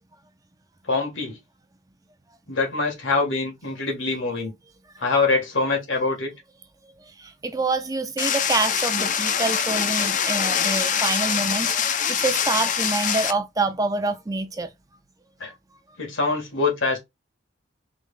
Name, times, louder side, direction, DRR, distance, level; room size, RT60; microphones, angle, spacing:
voice 1, 0.9-1.4 2.5-4.5 5.0-6.3 15.4-15.5 16.0-17.0, left 3 dB, 80° left, 1.9 m, -24 dB
voice 2, 7.4-14.7, right 3 dB, 20° right, 0.5 m, -26 dB
sound 1, 8.2-13.3, left 8 dB, 40° left, 0.5 m, -24 dB
4.7 x 3.4 x 2.5 m
head